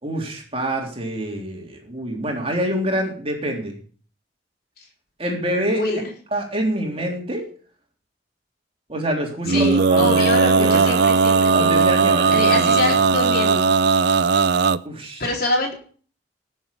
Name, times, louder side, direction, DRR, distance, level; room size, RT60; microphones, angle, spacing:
voice 1, 0.0-3.8 5.2-5.8 6.3-7.4 8.9-10.9 11.5-13.0 14.8-15.2, right 1 dB, 30° right, 1 dB, 3.4 m, -26 dB
Male singing, 9.4-14.8, right 4 dB, 60° right, 0.5 m, -17 dB
voice 2, 9.5-11.9 12.3-13.7 15.2-15.7, left 2 dB, 55° left, 0 dB, 4.1 m, -25 dB
18.5 x 7.3 x 5.4 m, 0.43 s
head